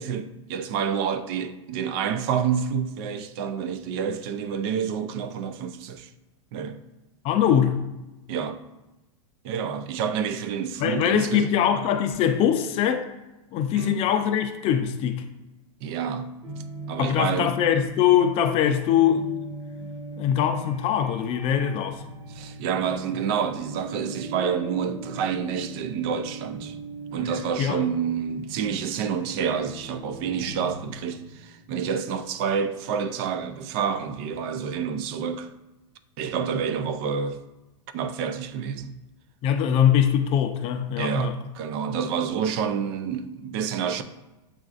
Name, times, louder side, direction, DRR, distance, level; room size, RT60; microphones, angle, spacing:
voice 1, 0.0-6.1 6.5-6.8 8.3-8.6 9.4-11.5 13.7-14.0 15.8-16.4 16.9-17.6 22.3-26.8 27.1-35.5 36.2-37.4 37.9-38.9 41.0-44.0, right 7 dB, 50° right, 0.4 m, -28 dB
voice 2, 7.2-7.8 10.8-13.1 13.5-15.2 17.0-19.2 20.2-22.0 27.6-27.8 39.4-41.4, left 9 dB, 35° left, 0.4 m, -22 dB
sound 1, 16.4-31.6, right 2 dB, 20° right, 1.2 m, -39 dB
7.3 x 2.5 x 2.4 m
supercardioid pair, 140°, 17 cm